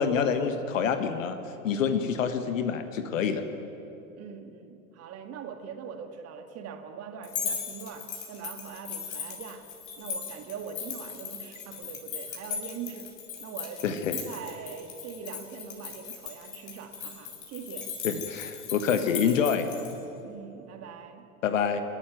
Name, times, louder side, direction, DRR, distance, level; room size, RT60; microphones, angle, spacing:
voice 1, 0.0-1.4 1.6-3.4 13.8-14.2 18.0-19.7 21.4-21.8, left 7 dB, 65° left, 9 dB, 1.5 m, -27 dB
voice 2, 4.2-9.7 10.0-13.1 13.4-18.0 20.2-21.3, right 6 dB, 35° right, 6 dB, 2.0 m, -42 dB
sound 1, 7.2-19.9, left 7 dB, 45° left, 5.9 m, -38 dB
28.0 x 12.0 x 9.3 m, 2.9 s
figure-of-eight pair, 85°, 42 cm